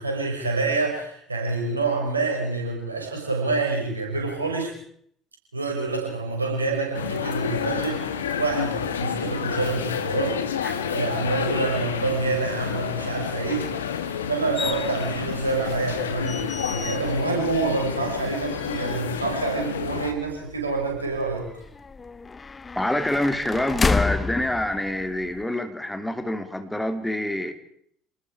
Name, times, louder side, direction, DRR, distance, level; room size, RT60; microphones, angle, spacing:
voice 1, 0.0-4.7 5.5-13.7 14.3-21.5, right 3 dB, 90° right, 0 dB, 5.9 m, -27 dB
sound 1, 6.9-20.1, left 8 dB, 80° left, 1.5 m, -30 dB
sound 2, 14.6-25.4, left 4 dB, 25° left, 0.9 m, -32 dB
voice 2, 22.7-27.5, left 1 dB, 10° left, 7 dB, 3.2 m, -26 dB
28.0 x 20.0 x 4.9 m, 0.66 s
figure-of-eight pair, 60°, 0 cm